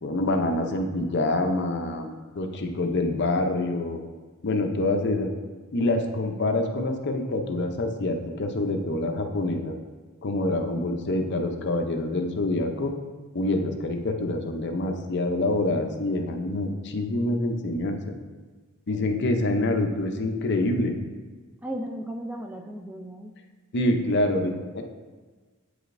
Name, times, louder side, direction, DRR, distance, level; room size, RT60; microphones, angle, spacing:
voice 1, 0.0-4.0 4.4-5.3 5.7-9.8 10.2-12.9 13.3-18.1 18.9-20.9 23.7-24.8, left 2 dB, 50° left, 5 dB, 0.6 m, -26 dB
voice 2, 21.6-23.3, right 1 dB, 5° right, 2 dB, 0.4 m, -35 dB
8.2 x 5.0 x 2.6 m, 1.4 s
head